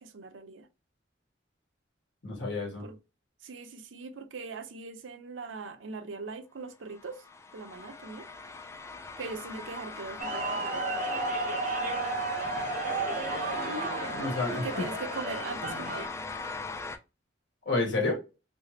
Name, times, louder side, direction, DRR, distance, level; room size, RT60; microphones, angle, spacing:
voice 1, 0.0-0.7 2.8-3.0 3.4-7.2 7.5-8.3 9.2-10.9 14.5-16.1, right 4 dB, 85° right, 0.6 m, -41 dB
voice 2, 2.2-2.8 13.6-14.6 17.6-18.2, left 3 dB, 65° left, 1.5 m, -30 dB
sound 1, 6.9-17.0, left 3 dB, 15° left, 0.3 m, -40 dB
sound 2, 10.2-16.1, right 2 dB, 45° right, 0.8 m, -33 dB
3.3 x 2.8 x 2.9 m
head